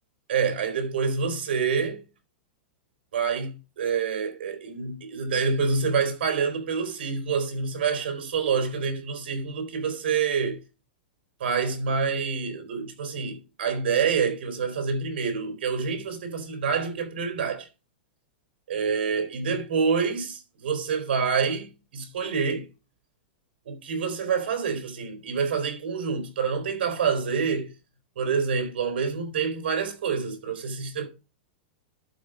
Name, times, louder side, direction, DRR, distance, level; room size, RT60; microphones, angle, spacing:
voice 1, 0.3-2.0 3.1-10.6 11.4-17.7 18.7-22.6 23.6-27.7 28.1-31.1, right 5 dB, 80° right, 3.4 m, -27 dB
12.0 x 5.0 x 5.0 m
supercardioid pair, 175°, 6 cm